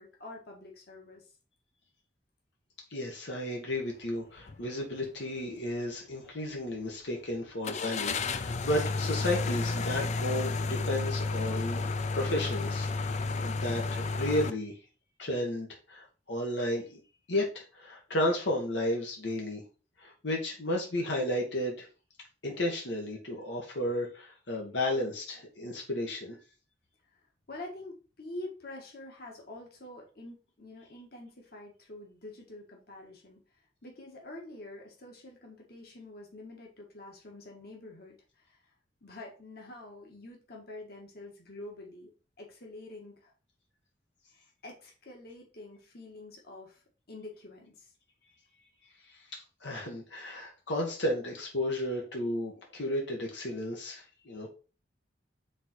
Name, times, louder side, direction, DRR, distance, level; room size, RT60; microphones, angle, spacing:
voice 1, 0.0-1.3 27.5-33.4 33.8-38.6 39.0-42.1 42.4-43.3 44.3-47.9, left 2 dB, 60° left, 0 dB, 1.8 m, -47 dB
voice 2, 2.9-14.7 15.2-17.0 17.3-19.6 20.0-21.9 22.4-26.4 49.6-54.5, left 1 dB, 85° left, 0 dB, 1.6 m, -33 dB
sound 1, 4.4-4.6 5.1-5.2 7.6-14.5, left 3 dB, 40° left, 0.5 m, -32 dB
5.2 x 3.9 x 4.6 m, 0.34 s
head